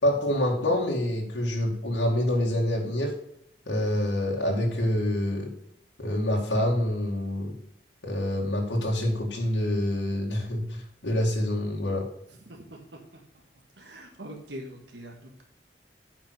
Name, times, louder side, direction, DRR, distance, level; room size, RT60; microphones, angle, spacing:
voice 1, 0.0-3.1 3.7-5.5 6.0-7.5 8.0-12.1, left 1 dB, 85° left, -1 dB, 2.2 m, -26 dB
voice 2, 12.4-12.8 13.8-15.4, equal, 70° right, 2 dB, 1.7 m, -43 dB
8.8 x 5.6 x 6.5 m, 0.70 s
head